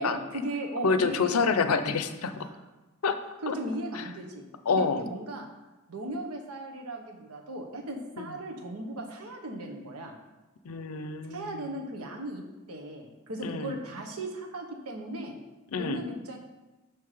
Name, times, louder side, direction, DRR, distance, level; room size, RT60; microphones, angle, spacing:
voice 1, 0.0-1.4 2.4-2.6 3.4-4.4 4.7-5.5 5.9-10.2 11.3-12.4 12.7-15.4 15.8-16.4, right 1 dB, 80° right, 3 dB, 1.1 m, -37 dB
voice 2, 0.8-2.5 3.0-3.2 3.5-3.6 3.9-4.0 4.7-5.0 8.2-8.3 10.6-11.6 13.4-13.7 15.7-16.0, left 4 dB, 70° left, 10 dB, 0.5 m, -27 dB
6.3 x 5.8 x 4.9 m, 1.1 s
head